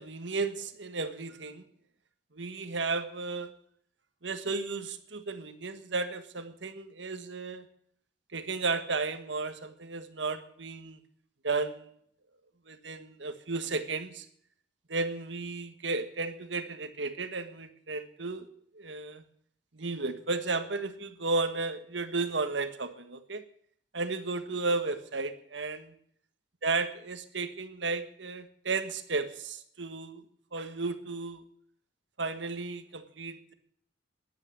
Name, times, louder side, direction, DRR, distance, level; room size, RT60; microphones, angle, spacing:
voice 1, 0.0-1.6 2.3-3.5 4.2-7.7 8.3-11.0 11.4-11.9 12.7-14.3 14.9-18.5 18.7-19.2 19.7-23.4 23.9-25.9 26.6-31.4 32.2-33.5, right 3 dB, 75° right, 9 dB, 1.5 m, -34 dB
15.0 x 10.5 x 8.2 m, 0.66 s
head